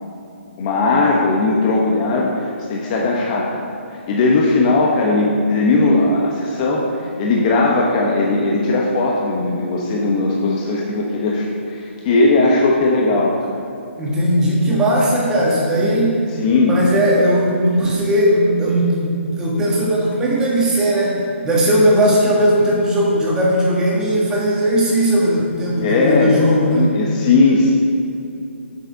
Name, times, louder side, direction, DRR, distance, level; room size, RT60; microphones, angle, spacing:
voice 1, 0.6-3.6 3.9-13.4 15.7-15.9 16.4-16.8 25.8-27.7, left 3 dB, 30° left, -2 dB, 1.1 m, -18 dB
voice 2, 14.0-16.3 16.6-26.9, equal, 10° right, -5 dB, 1.7 m, -17 dB
8.2 x 6.7 x 6.8 m, 2.6 s
hypercardioid pair, 155°, 7 cm